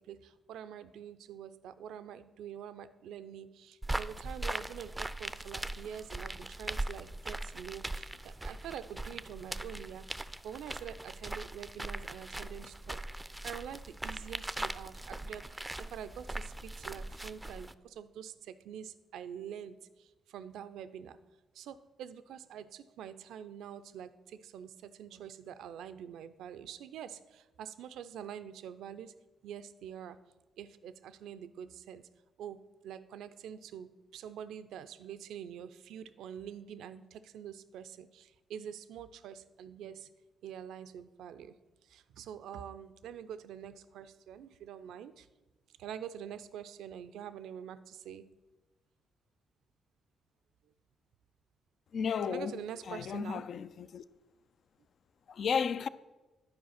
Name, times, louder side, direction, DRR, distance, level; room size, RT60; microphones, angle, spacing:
voice 1, 0.0-21.2 21.5-29.1 29.4-30.2 30.6-32.0 32.4-40.1 40.4-41.6 41.8-45.3 45.8-48.3 52.2-53.5, right 9 dB, 75° right, 0.4 m, -46 dB
sound 1, 3.8-17.7, right 1 dB, 10° right, 0.4 m, -40 dB
voice 2, 51.9-52.6 52.9-54.0 55.3-55.9, left 6 dB, 60° left, 0.3 m, -33 dB
9.6 x 4.6 x 5.7 m
hypercardioid pair, 50°, 0 cm